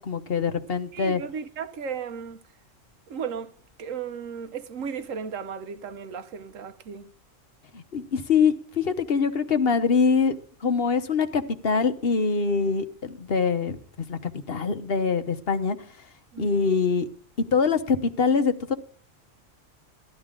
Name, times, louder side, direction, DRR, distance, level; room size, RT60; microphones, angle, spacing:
voice 1, 0.0-1.2 7.7-13.8 14.1-15.8 16.4-17.1 17.5-18.7, left 5 dB, 50° left, 1.2 m, -24 dB
voice 2, 0.9-2.4 3.1-3.5 3.8-7.1 16.3-16.5, right 6 dB, 85° right, 1.3 m, -35 dB
16.0 x 12.0 x 3.7 m
omnidirectional pair, 1.3 m